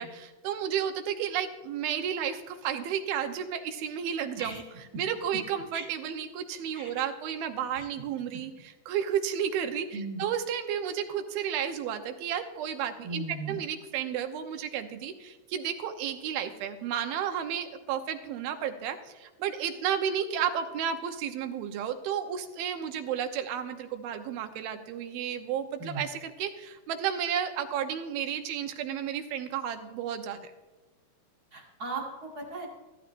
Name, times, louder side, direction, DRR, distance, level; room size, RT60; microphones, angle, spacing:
voice 1, 0.0-4.6 5.0-30.4, right 8 dB, 85° right, 7 dB, 2.8 m, -32 dB
voice 2, 9.9-10.2 13.0-13.6 25.8-26.0 31.5-32.7, right 2 dB, 35° right, 0 dB, 1.9 m, -37 dB
14.0 x 14.0 x 2.6 m, 1.2 s
omnidirectional pair, 4.2 m